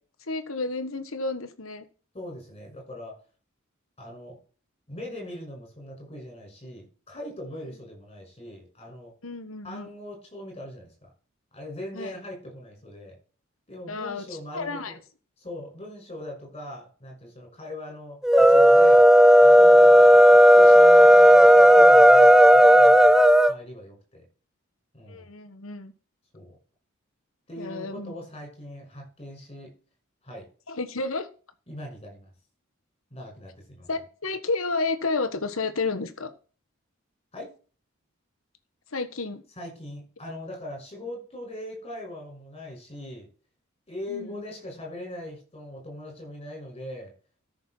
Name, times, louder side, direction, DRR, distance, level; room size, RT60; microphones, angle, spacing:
voice 1, 0.3-1.9 9.2-9.9 11.9-12.1 13.9-14.2 14.5-15.0 25.1-25.9 27.6-28.1 30.7-31.3 33.9-36.3 38.9-39.4 44.1-44.4, left 3 dB, 75° left, 9 dB, 1.4 m, -31 dB
voice 2, 2.1-3.2 4.0-4.4 4.9-9.1 9.6-10.9 11.5-13.2 13.7-15.0 15.4-19.1 19.4-20.3 20.5-23.2 23.5-24.2 24.9-25.3 26.3-26.6 27.5-29.7 30.2-30.5 31.7-32.3 33.1-33.9 37.3-37.5 39.6-43.3 43.9-47.1, left 1 dB, 30° left, 1 dB, 6.2 m, -40 dB
sound 1, 18.2-23.5, equal, 5° right, 0.4 m, -13 dB
13.5 x 6.6 x 4.5 m, 0.38 s
head